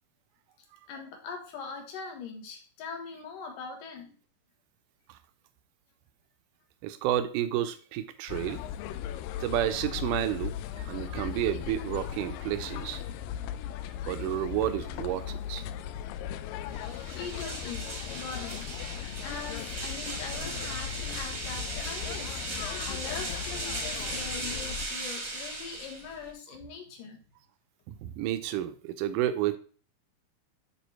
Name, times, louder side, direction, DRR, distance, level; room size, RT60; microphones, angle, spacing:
voice 1, 0.9-4.2 17.1-27.2, left 5 dB, 65° left, 3 dB, 2.7 m, -42 dB
voice 2, 6.8-8.6 9.4-13.0 14.0-15.6 27.9-29.6, right 12 dB, 80° right, 10 dB, 1.9 m, -31 dB
sound 1, 8.3-24.9, left 11 dB, 85° left, 2.0 m, -38 dB
sound 2, 16.6-26.3, right 2 dB, 45° right, 0.8 m, -37 dB
10.0 x 3.4 x 4.5 m, 0.40 s
omnidirectional pair, 4.3 m